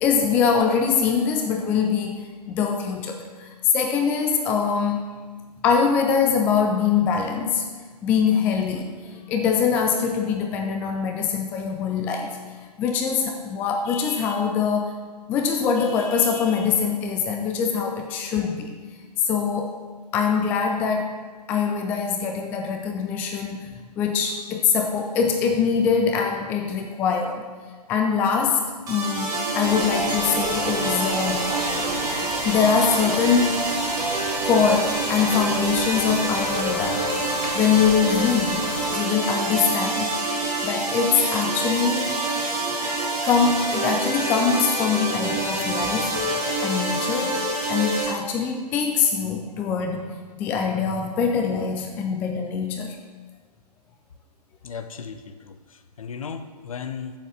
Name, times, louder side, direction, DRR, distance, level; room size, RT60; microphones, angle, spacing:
voice 1, 0.0-2.2 2.5-5.0 5.6-7.6 8.0-12.4 12.8-15.0 15.3-18.7 19.2-19.7 20.1-21.2 21.5-23.7 24.0-27.4 27.9-31.5 32.4-34.0 34.4-40.1 40.6-42.2 43.2-46.2 46.6-47.4 47.7-53.0, left 6 dB, 10° left, 3 dB, 0.3 m, -23 dB
sound 1, 28.9-48.1, right 2 dB, 15° right, 2.1 m, -26 dB
sound 2, 29.6-39.0, right 1 dB, 85° right, 1.7 m, -33 dB
voice 2, 54.6-57.1, left 6 dB, 55° left, 8 dB, 0.8 m, -36 dB
7.9 x 7.1 x 6.2 m, 1.5 s
figure-of-eight pair, 120°, 21 cm